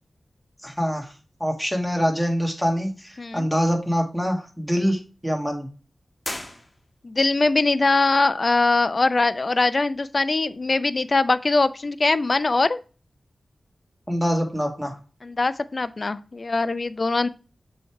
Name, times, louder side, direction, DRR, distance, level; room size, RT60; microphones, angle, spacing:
voice 1, 0.6-1.1 1.4-5.7 14.1-14.9, equal, ahead, 1 dB, 1.8 m, -24 dB
sound 1, 6.2-7.3, left 1 dB, 25° left, 1.3 m, -36 dB
voice 2, 7.0-12.8 15.2-17.3, left 3 dB, 50° left, 13 dB, 0.5 m, -22 dB
6.9 x 3.3 x 4.7 m, 0.35 s
wide cardioid pair, 60°, 0 cm